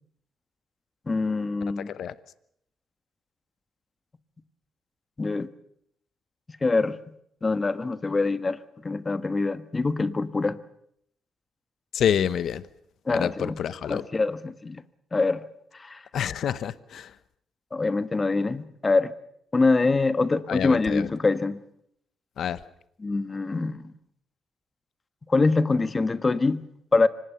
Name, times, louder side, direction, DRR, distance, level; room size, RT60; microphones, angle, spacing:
voice 1, 1.1-1.9 5.2-5.5 6.6-6.9 7.4-10.6 13.1-13.6 13.9-14.8 15.1-15.4 15.7-16.0 17.7-19.1 19.5-21.6 23.0-23.9 25.3-26.6 26.9-27.1, left 3 dB, 25° left, 13 dB, 1.3 m, -24 dB
voice 2, 1.8-2.1 11.9-12.6 13.1-14.1 16.1-17.2 20.5-21.1 22.4-22.6, left 9 dB, 65° left, 16 dB, 0.9 m, -28 dB
25.0 x 19.0 x 6.9 m, 0.72 s
cardioid pair, 90°, 0 cm